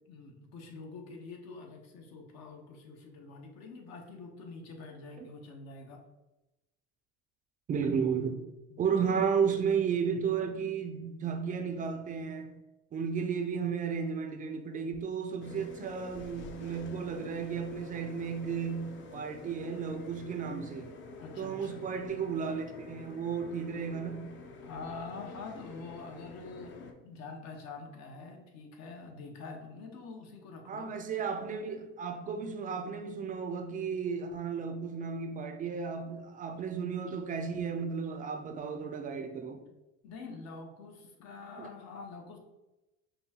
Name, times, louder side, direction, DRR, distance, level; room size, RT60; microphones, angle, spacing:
voice 1, 0.1-6.0 8.7-9.2 21.2-21.8 24.6-30.9 40.0-42.4, left 4 dB, 65° left, 0.9 m, -46 dB
voice 2, 7.7-8.4 8.8-12.5 12.9-20.9 21.4-24.3 30.7-39.6 41.6-41.7, right 6 dB, 30° right, 0.4 m, -33 dB
sound 1, 15.4-26.9, left 3 dB, 40° left, 0.5 m, -48 dB
5.3 x 2.3 x 2.8 m
cardioid pair, 130°, 29 cm